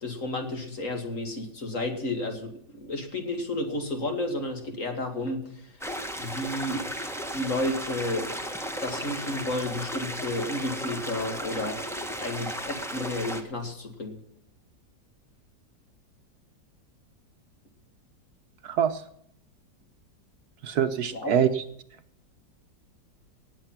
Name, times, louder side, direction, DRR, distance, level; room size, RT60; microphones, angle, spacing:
voice 1, 0.0-5.7 6.2-6.9 7.3-14.2 21.1-21.3, left 1 dB, 45° left, 4 dB, 2.7 m, -32 dB
sound 1, 5.8-13.4, equal, ahead, 1.3 m, -35 dB
voice 2, 18.6-19.0 20.6-21.6, right 8 dB, 65° right, 10 dB, 1.4 m, -24 dB
18.5 x 7.8 x 5.9 m, 0.66 s
omnidirectional pair, 1.9 m